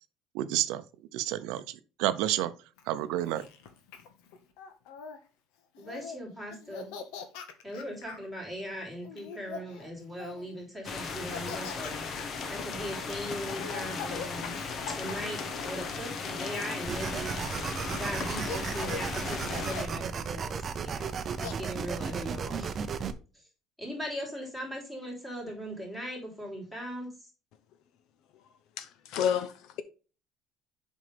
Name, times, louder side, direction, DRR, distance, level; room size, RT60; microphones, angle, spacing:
voice 1, 0.3-0.8 1.1-2.5 2.9-3.4, right 14 dB, 75° right, 0.6 m, -30 dB
Laughter, 2.8-5.2 5.7-6.2 6.5-8.3 9.0-10.5 11.1-16.0 16.4-17.4 18.0-18.1 18.4-19.1 19.5-20.0 21.0-21.5, left 6 dB, 85° left, 1.4 m, -43 dB
voice 2, 5.8-7.0 7.6-12.0 12.5-14.6 14.9-17.3 17.9-22.8 23.3-23.5 23.8-27.3, equal, 10° left, 3.2 m, -39 dB
sound 1, 10.8-19.8, left 4 dB, 35° left, 1.1 m, -36 dB
sound 2, 16.8-23.1, right 6 dB, 25° right, 0.6 m, -35 dB
voice 3, 28.8-29.8, left 8 dB, 60° left, 0.7 m, -30 dB
7.5 x 5.2 x 3.4 m
cardioid pair, 165°, 0 cm